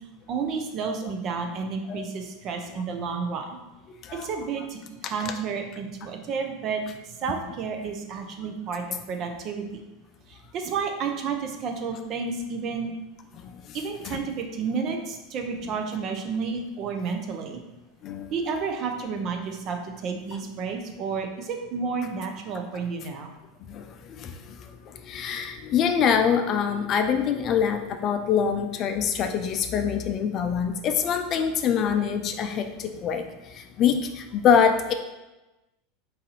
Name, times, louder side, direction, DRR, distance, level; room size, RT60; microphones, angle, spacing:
voice 1, 0.3-3.6 4.1-9.8 10.3-12.9 13.7-17.6 18.3-23.3, right 5 dB, 45° right, 4 dB, 0.6 m, -31 dB
voice 2, 3.9-4.3 5.0-5.1 13.4-13.8 14.0-14.2 18.0-18.3 23.7-34.9, left 7 dB, 45° left, 7 dB, 0.4 m, -25 dB
4.0 x 2.7 x 4.0 m, 1.0 s
hypercardioid pair, 95°, 0 cm